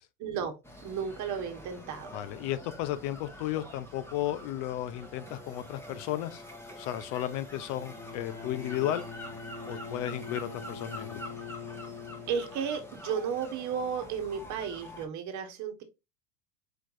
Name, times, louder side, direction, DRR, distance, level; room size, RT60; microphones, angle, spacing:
voice 1, 0.2-0.5 0.8-2.1 12.3-15.8, right 7 dB, 40° right, 1.3 m, -33 dB
sound 1, 0.6-15.1, left 1 dB, 5° left, 1.2 m, -46 dB
voice 2, 2.1-6.4 6.8-9.0 9.7-11.2, left 12 dB, 55° left, 0.6 m, -34 dB
Bowed string instrument, 7.7-13.0, left 5 dB, 35° left, 1.2 m, -43 dB
4.5 x 4.5 x 2.5 m
supercardioid pair, 120°, 42 cm